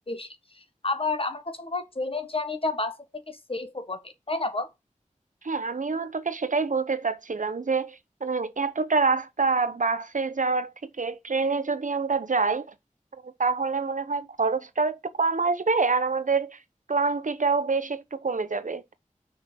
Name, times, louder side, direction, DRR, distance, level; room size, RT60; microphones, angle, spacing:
voice 1, 0.8-4.7, left 3 dB, 45° left, 1.4 m, -30 dB
voice 2, 5.4-10.7 11.0-12.7 13.2-16.6 16.9-18.9, right 4 dB, 75° right, 0.9 m, -26 dB
6.2 x 5.1 x 5.7 m
wide cardioid pair, 55°, 13 cm